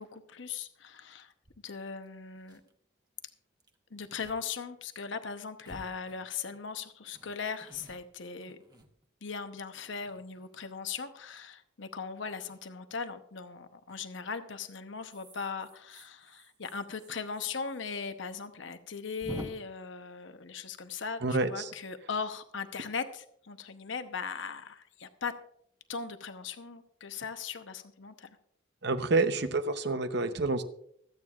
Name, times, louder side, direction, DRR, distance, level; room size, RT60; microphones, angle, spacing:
voice 1, 0.0-1.3 1.6-2.6 3.9-8.6 9.2-25.4 25.9-28.4, left 5 dB, 70° left, 8 dB, 0.9 m, -39 dB
sound 1, 1.4-1.6 2.0-2.1 2.3-2.7 3.6-3.8 4.2-4.4 4.7-4.8 5.6-6.6 7.1-9.4 9.9-10.7 12.3-12.6 13.9-14.2 15.0-17.8 18.1-18.2 18.4-18.5 19.2-19.5, equal, 20° right, 1.1 m, -49 dB
voice 2, 21.2-21.7 28.8-30.6, right 3 dB, 60° right, 10 dB, 0.8 m, -28 dB
25.0 x 8.8 x 2.5 m, 0.69 s
head